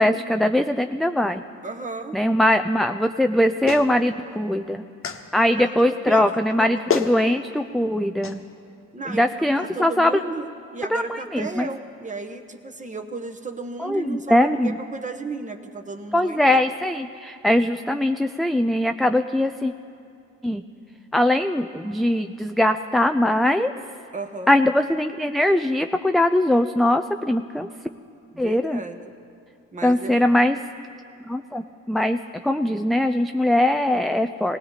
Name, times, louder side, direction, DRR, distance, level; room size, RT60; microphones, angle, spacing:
voice 1, 0.0-1.4 2.1-4.8 5.3-8.4 9.1-10.1 10.9-11.7 13.8-14.8 16.1-19.7 20.4-20.6 21.1-23.7 24.5-27.7 28.4-28.8 29.8-30.6 31.3-34.6, left 1 dB, ahead, 7 dB, 0.4 m, -21 dB
voice 2, 1.6-2.2 5.6-6.8 8.9-16.5 24.1-24.5 28.3-29.1 29.7-30.3, right 3 dB, 25° right, 7 dB, 1.3 m, -34 dB
Clapping, 3.7-3.9 5.0-5.2 6.5-6.6 6.9-7.1 8.2-8.4, left 7 dB, 45° left, 1.3 m, -25 dB
19.5 x 18.5 x 4.1 m, 2.6 s
cardioid pair, 90°, 30 cm